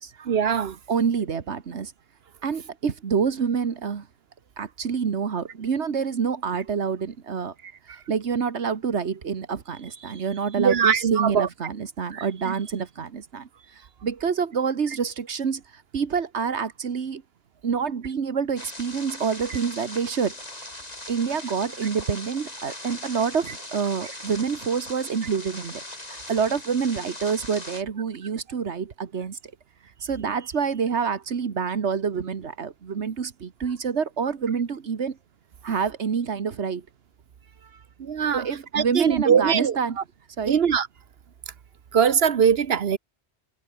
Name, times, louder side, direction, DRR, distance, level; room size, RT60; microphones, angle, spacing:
voice 1, 0.2-0.8 10.6-11.5 12.1-12.5 38.0-38.5 38.7-39.8 40.5-40.9 41.9-43.0, right 7 dB, 65° right, 1.1 m, -21 dB
voice 2, 0.9-1.9 2.4-4.1 4.6-7.5 8.1-15.6 15.9-17.2 17.6-20.3 21.1-25.8 26.1-29.4 30.0-35.2 35.6-36.8 38.3-40.0 40.4-40.6, right 6 dB, 85° right, 1.7 m, -27 dB
sound 1, 18.6-27.8, left 1 dB, 35° left, 4.8 m, -40 dB
omnidirectional pair, 1.1 m